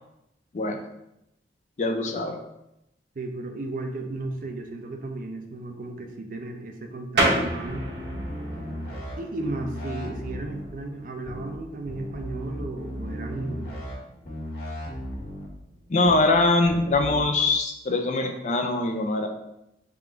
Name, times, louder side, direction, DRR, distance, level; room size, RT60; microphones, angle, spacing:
voice 1, 1.8-2.4 15.9-19.3, left 2 dB, 45° left, 5 dB, 0.4 m, -23 dB
voice 2, 3.2-7.9 9.2-13.7, right 2 dB, 50° right, 4 dB, 0.5 m, -34 dB
sound 1, 7.2-17.3, right 1 dB, 70° right, 0.9 m, -33 dB
sound 2, 7.7-9.1 9.4-10.7 11.2-11.5 11.8-13.9 14.2-15.5 16.0-16.3 16.6-17.2, equal, 70° left, 1.4 m, -36 dB
3.5 x 2.5 x 4.4 m, 0.87 s
head